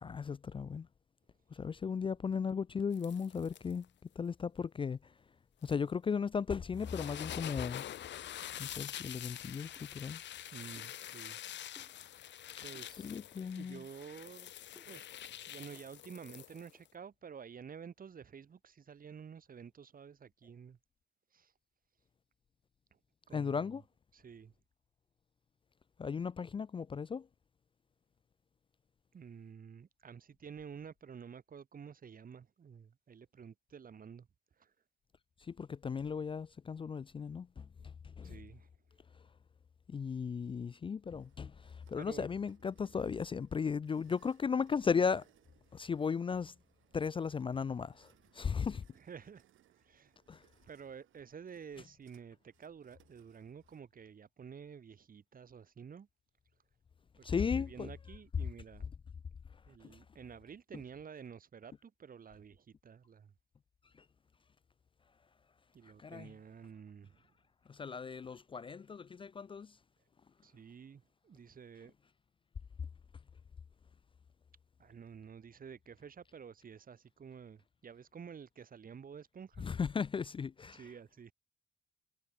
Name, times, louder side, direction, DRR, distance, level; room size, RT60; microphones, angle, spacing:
voice 1, 0.0-0.9 1.5-3.9 4.2-5.0 5.6-7.9 8.6-10.2 13.0-13.8 23.3-23.8 26.0-27.3 35.5-38.3 39.9-45.2 45.7-46.5 46.9-48.8 50.3-50.4 57.2-57.9 66.0-66.3 67.7-69.7 79.6-80.8, left 6 dB, 25° left, 0.4 m, -36 dB
sound 1, 2.9-3.8 5.6-5.7 6.7-16.9, left 12 dB, 65° left, 0.9 m, -46 dB
sound 2, 9.8-9.9 10.8-11.0 11.8-12.1 12.7-13.0 13.8-13.9 14.8-15.1 15.8-15.9 16.7-16.9, right 1 dB, 5° right, 5.8 m, -63 dB
voice 2, 10.5-11.4 12.6-13.1 13.6-14.5 14.9-20.8 21.3-21.5 22.9-23.0 23.3-23.8 24.1-24.5 29.1-34.3 34.6-34.7 37.8-37.9 38.2-38.7 42.0-42.3 48.9-49.5 49.7-50.1 50.6-56.1 57.2-58.9 59.7-63.3 65.7-67.3 70.4-71.9 74.8-79.7 80.7-81.3, right 7 dB, 45° right, 3.1 m, -51 dB
sound 3, 41.1-53.8, right 13 dB, 80° right, 6.4 m, -71 dB
cardioid pair, 90°, 20 cm